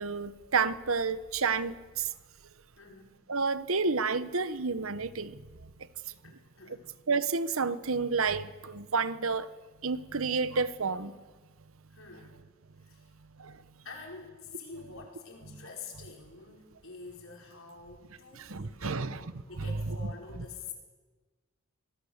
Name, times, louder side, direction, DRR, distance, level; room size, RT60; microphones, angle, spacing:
voice 1, 0.0-2.1 3.3-5.4 7.1-9.5 9.8-11.1 13.4-13.5 18.4-19.3 19.6-20.0, right 4 dB, 70° right, 1.1 m, -30 dB
voice 2, 2.8-3.2 6.2-6.9 11.9-12.4 12.9-13.1 13.8-19.2 19.5-20.7, left 4 dB, 65° left, 5.1 m, -47 dB
25.5 x 19.0 x 7.3 m
head